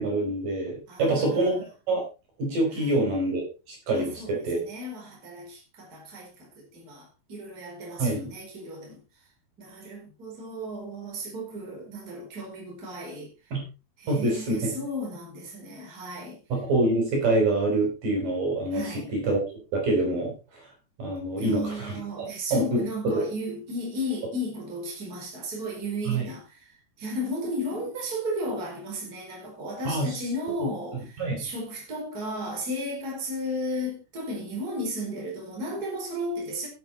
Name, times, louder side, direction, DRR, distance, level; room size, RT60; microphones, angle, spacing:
voice 1, 0.0-2.0 2.4-4.6 8.0-8.3 13.5-13.6 14.1-14.7 16.5-20.3 21.0-23.2 26.1-26.2 29.8-30.2 31.2-31.4, right 2 dB, 50° right, 6.3 m, -26 dB
voice 2, 0.9-1.7 2.7-2.9 3.9-9.0 9.6-13.5 14.0-16.4 18.7-19.1 21.4-36.7, equal, 20° right, 4.8 m, -34 dB
12.0 x 9.1 x 4.3 m
omnidirectional pair, 4.9 m